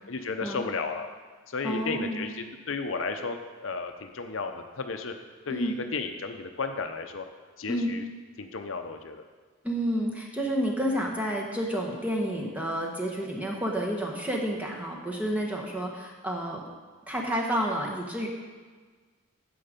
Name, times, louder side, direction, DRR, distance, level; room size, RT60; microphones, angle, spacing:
voice 1, 0.1-1.1 1.5-5.1 5.5-7.3 7.6-8.0 8.4-9.2, left 4 dB, 65° left, 6 dB, 0.7 m, -33 dB
voice 2, 1.6-2.3 5.5-5.8 7.7-7.9 9.6-16.6 17.1-18.3, equal, 5° right, -1 dB, 1.4 m, -30 dB
9.9 x 7.8 x 5.2 m, 1.5 s
head